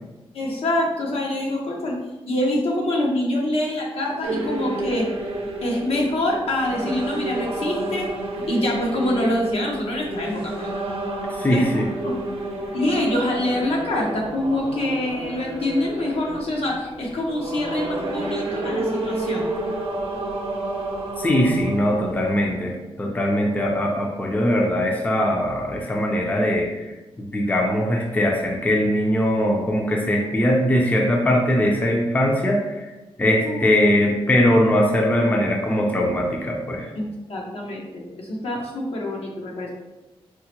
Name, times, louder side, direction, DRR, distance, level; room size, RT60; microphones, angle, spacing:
voice 1, 0.3-2.0 2.3-5.1 5.6-8.1 8.5-10.7 11.5-12.2 12.7-19.4 33.4-33.6 37.0-39.7, left 1 dB, 70° left, -2 dB, 0.8 m, -25 dB
sound 1, 4.2-22.3, right 2 dB, 70° right, 0.6 m, -30 dB
voice 2, 11.4-11.9 21.2-32.9 33.2-36.9, equal, 15° left, 0 dB, 0.5 m, -21 dB
4.5 x 2.1 x 2.9 m, 1.1 s
wide cardioid pair, 100°, 10 cm